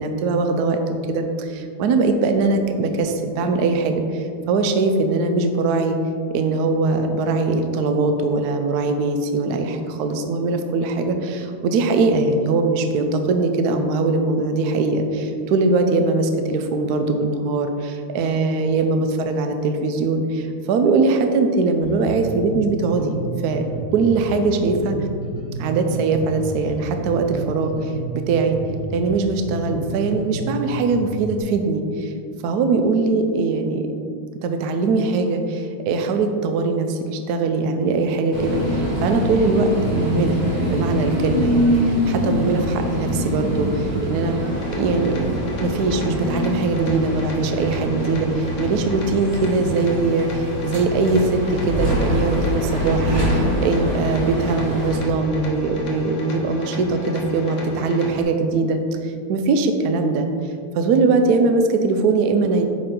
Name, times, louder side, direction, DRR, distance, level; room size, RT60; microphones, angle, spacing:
voice 1, 0.0-6.0 6.3-23.6 23.9-25.0 25.6-28.0 28.3-28.6 28.9-32.1 32.4-33.9 34.4-40.4 40.7-44.3 44.7-45.3 45.6-60.3 60.7-62.6, right 3 dB, 80° right, 6 dB, 0.8 m, -21 dB
Bass guitar, 21.8-31.4, right 4 dB, 50° right, 2.1 m, -31 dB
sound 1, 38.3-55.0, equal, 25° right, 1.1 m, -24 dB
sound 2, 44.5-58.2, equal, 60° left, 1.6 m, -34 dB
9.0 x 4.3 x 3.7 m, 2.3 s
omnidirectional pair, 2.4 m